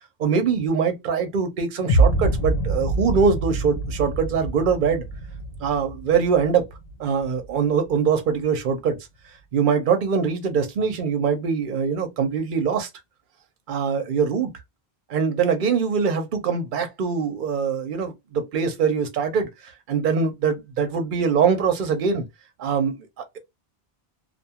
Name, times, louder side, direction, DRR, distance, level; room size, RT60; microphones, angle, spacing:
voice 1, 0.2-5.0 5.6-6.6 7.0-9.0 9.5-12.9 13.7-14.5 15.1-22.2 22.6-23.1, right 6 dB, 55° right, 0.8 m, -23 dB
sound 1, 1.9-7.9, right 2 dB, 70° left, 0.8 m, -25 dB
2.5 x 2.3 x 2.7 m
omnidirectional pair, 1.0 m